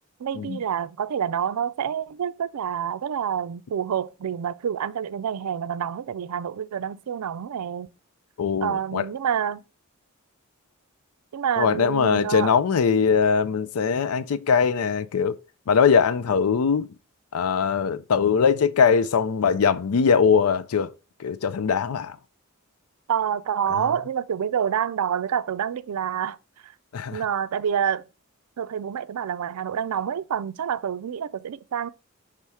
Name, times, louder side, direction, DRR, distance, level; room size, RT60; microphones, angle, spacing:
voice 1, 0.2-7.9 8.6-9.6 11.3-12.5 23.1-26.4 27.1-28.0 28.6-31.9, right 8 dB, 85° right, 0.4 m, -27 dB
voice 2, 8.4-9.1 11.6-15.4 15.7-16.9 17.3-20.9 21.2-22.2 23.7-23.9 26.9-27.2, left 6 dB, 80° left, 0.4 m, -21 dB
5.6 x 3.6 x 4.6 m
head